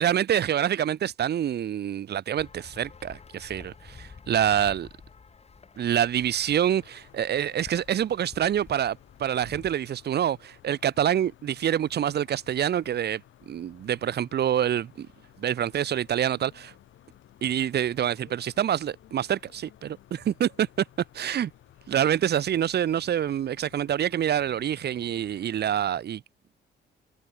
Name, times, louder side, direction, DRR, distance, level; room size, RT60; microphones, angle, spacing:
voice 1, 0.0-4.9 5.8-13.2 13.5-15.1 15.4-16.7 17.4-20.8 21.1-21.5 21.9-26.2, right 10 dB, 55° right, 1.0 m, -26 dB
sound 1, 2.3-9.8, left 5 dB, 30° left, 1.6 m, -50 dB
sound 2, 6.3-26.0, left 12 dB, 80° left, 7.5 m, -56 dB
cardioid pair, 90°, 20 cm